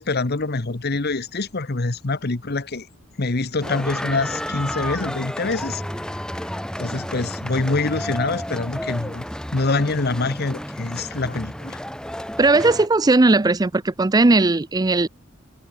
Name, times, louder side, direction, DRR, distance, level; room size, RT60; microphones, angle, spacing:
voice 1, 0.0-2.9 3.2-5.8 6.1-6.2 6.8-9.3 9.5-11.8, left 3 dB, 50° left, 1.1 m, -25 dB
sound 1, 3.6-12.9, equal, 5° left, 2.7 m, -31 dB
voice 2, 12.4-15.1, right 2 dB, 20° right, 0.5 m, -17 dB
head